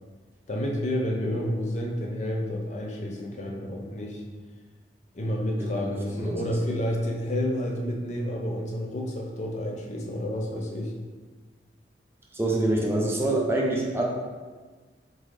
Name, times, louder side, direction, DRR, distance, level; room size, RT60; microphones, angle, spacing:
voice 1, 0.5-4.2 5.1-10.9, equal, 40° left, 0 dB, 0.6 m, -30 dB
voice 2, 5.5-6.4 12.3-14.0, right 1 dB, 15° right, -2 dB, 0.6 m, -26 dB
3.9 x 3.7 x 3.2 m, 1.4 s
head